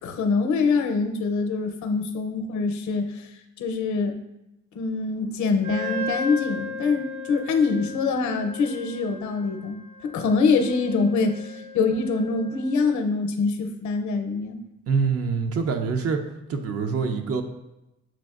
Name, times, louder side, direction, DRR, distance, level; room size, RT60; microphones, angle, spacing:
voice 1, 0.0-3.3 3.6-4.2 4.7-14.6, left 4 dB, 70° left, 6 dB, 0.6 m, -24 dB
Wind instrument woodwind instrument, 5.6-13.0, left 3 dB, 75° right, 0.9 m, -36 dB
voice 2, 14.9-16.2 16.5-17.4, right 5 dB, 50° right, 6 dB, 0.6 m, -25 dB
7.3 x 2.5 x 2.4 m, 0.92 s
cardioid pair, 90°, 30 cm